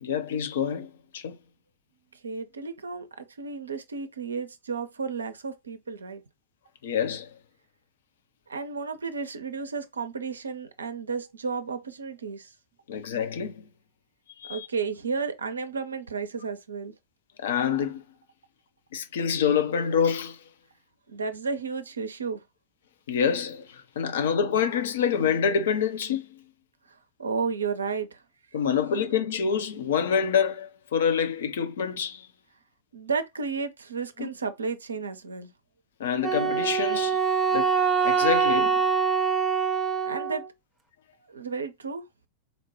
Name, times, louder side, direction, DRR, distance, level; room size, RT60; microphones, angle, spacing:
voice 1, 0.0-1.4 6.8-7.3 12.9-13.6 14.4-14.7 17.4-18.0 18.9-20.4 23.1-26.4 28.5-32.3 34.2-34.3 36.0-37.2 37.5-37.7 38.0-38.8, left 7 dB, 60° left, 0.5 m, -27 dB
voice 2, 2.1-6.2 8.5-12.5 14.5-16.9 21.1-22.4 26.9-28.2 32.9-35.5 40.0-40.4 41.3-42.1, right 5 dB, 75° right, 0.5 m, -33 dB
Wind instrument woodwind instrument, 36.2-40.5, right 6 dB, 10° right, 0.7 m, -24 dB
4.0 x 2.2 x 2.9 m
figure-of-eight pair, 90°, 0 cm